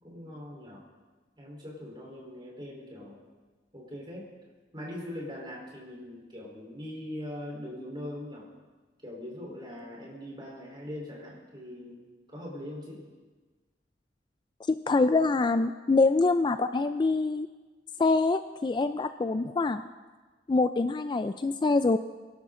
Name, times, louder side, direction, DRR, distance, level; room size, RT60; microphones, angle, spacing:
voice 1, 0.0-0.8 1.4-3.2 3.7-4.3 4.7-8.5 9.0-13.0, left 1 dB, 25° right, -3 dB, 3.8 m, -41 dB
voice 2, 14.7-17.5 18.0-19.8 20.5-22.0, left 3 dB, 25° left, 11 dB, 0.3 m, -25 dB
22.5 x 11.5 x 3.7 m, 1.3 s
head